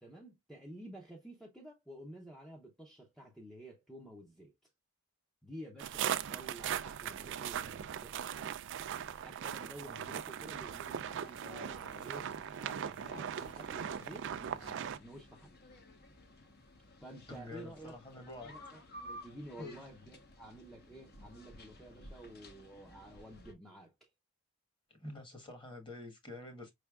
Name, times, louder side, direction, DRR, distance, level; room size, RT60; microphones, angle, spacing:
voice 1, 0.0-4.5 5.4-8.6 9.2-12.3 12.6-15.5 17.0-18.0 18.4-24.1, right 1 dB, ahead, 0.7 m, -51 dB
sound 1, 5.8-15.0, right 9 dB, 55° right, 0.3 m, -39 dB
sound 2, 10.5-23.5, left 1 dB, 45° left, 1.0 m, -55 dB
voice 2, 17.3-18.5 19.6-19.8 25.0-26.7, left 2 dB, 20° left, 1.3 m, -47 dB
5.4 x 3.3 x 2.3 m
head